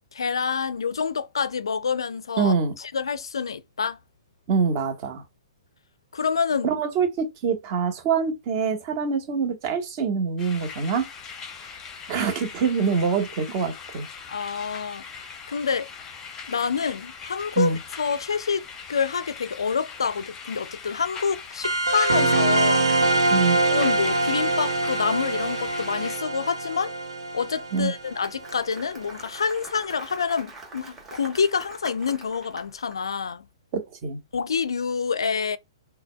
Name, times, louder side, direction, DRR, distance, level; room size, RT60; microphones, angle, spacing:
voice 1, 0.1-4.0 6.1-6.7 14.3-15.0 15.5-15.9 16.5-22.9 23.7-26.9 27.3-33.4 34.3-35.6, left 6 dB, 65° left, 0.4 m, -27 dB
voice 2, 2.4-2.7 4.5-5.2 6.6-11.1 12.1-14.1 17.6-17.8 23.3-23.6 27.7-27.9 33.7-34.2, right 5 dB, 35° right, 1.2 m, -25 dB
sound 1, 10.4-26.2, left 6 dB, 20° left, 0.8 m, -41 dB
sound 2, 21.6-28.7, right 2 dB, 70° right, 0.9 m, -24 dB
Applause, 27.8-33.0, right 2 dB, 15° right, 1.1 m, -44 dB
5.6 x 2.2 x 2.2 m
figure-of-eight pair, 120°, 3 cm